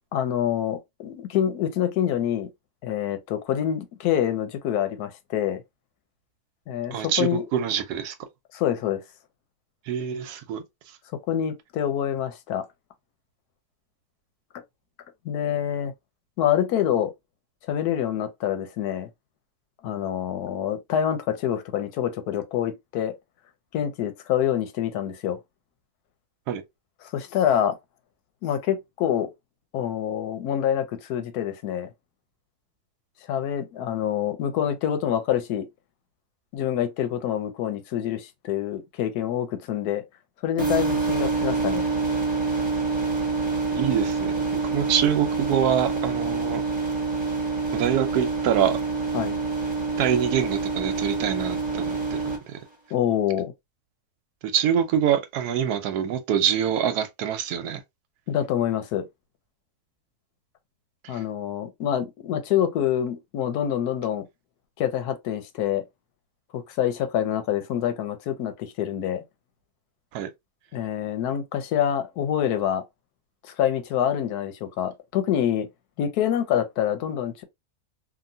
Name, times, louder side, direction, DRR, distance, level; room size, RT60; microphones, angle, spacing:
voice 1, 0.1-2.5 2.8-5.6 6.7-7.4 8.5-9.0 11.3-12.6 15.2-15.9 16.4-17.1 17.7-19.1 19.8-23.1 23.7-25.4 27.0-27.8 28.4-29.3 29.7-31.9 33.3-35.7 36.5-40.0 40.4-41.8 49.1-49.4 52.9-53.5 58.3-59.1 61.1-64.3 64.8-65.8 66.5-69.2 70.7-72.8 73.6-75.7 76.0-77.4, left 10 dB, 85° left, 1.2 m, -26 dB
voice 2, 6.9-8.1 9.9-10.6 26.5-26.6 43.7-46.6 47.7-48.8 50.0-52.2 52.5-52.6 54.4-57.8 70.1-70.3, right 9 dB, 90° right, 1.1 m, -25 dB
sound 1, 40.6-52.4, right 4 dB, 20° right, 1.1 m, -26 dB
2.9 x 2.4 x 2.6 m
omnidirectional pair, 1.6 m